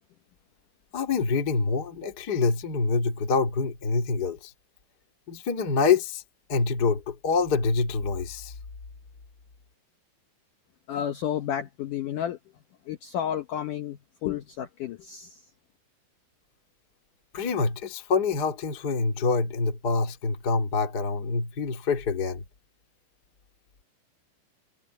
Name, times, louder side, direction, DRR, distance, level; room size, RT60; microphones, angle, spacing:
voice 1, 0.9-4.5 5.3-6.2 6.5-8.6 17.3-22.4, left 4 dB, 35° left, 1.8 m, -26 dB
voice 2, 10.9-12.4 12.9-15.4, left 10 dB, 90° left, 1.8 m, -31 dB
omnidirectional pair, 5.4 m